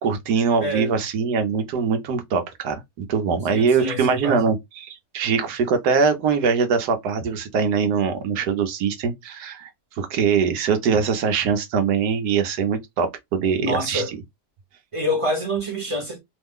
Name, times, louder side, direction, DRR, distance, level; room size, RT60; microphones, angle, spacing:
voice 1, 0.0-9.7 10.0-14.2, right 6 dB, 70° right, 1.3 m, -22 dB
voice 2, 0.6-0.9 3.5-4.5 10.9-11.0 13.6-14.1 14.9-16.2, equal, 25° right, 0.8 m, -26 dB
3.2 x 2.1 x 3.5 m
omnidirectional pair, 1.8 m